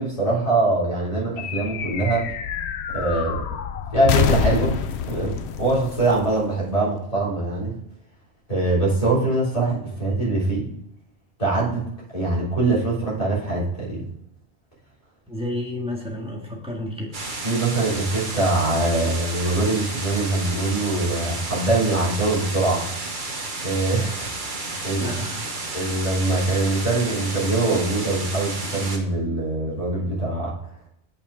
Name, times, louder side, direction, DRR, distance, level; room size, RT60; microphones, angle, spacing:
voice 1, 0.0-2.2 2.9-3.4 3.9-4.8 5.1-7.8 8.5-10.7 11.4-11.9 12.1-14.0 17.4-22.9 23.6-25.1 25.7-30.5, right 2 dB, 30° left, -8 dB, 3.7 m, -23 dB
sound 1, 1.4-7.1, left 7 dB, 70° left, 0.9 m, -27 dB
voice 2, 15.3-17.2 25.0-25.4, left 1 dB, 5° right, -2 dB, 1.8 m, -31 dB
sound 2, 17.1-29.0, right 2 dB, 45° right, 1.4 m, -32 dB
7.0 x 5.8 x 5.0 m, 0.81 s
omnidirectional pair, 1.2 m